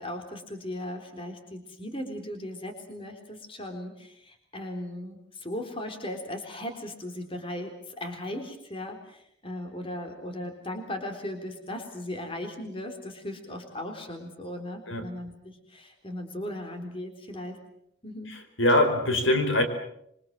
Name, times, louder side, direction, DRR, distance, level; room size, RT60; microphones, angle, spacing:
voice 1, 0.0-17.6 18.0-18.3, left 1 dB, 25° left, 4 dB, 3.8 m, -37 dB
voice 2, 18.3-19.6, left 1 dB, 70° left, 7 dB, 4.9 m, -23 dB
26.5 x 24.5 x 7.6 m, 0.73 s
head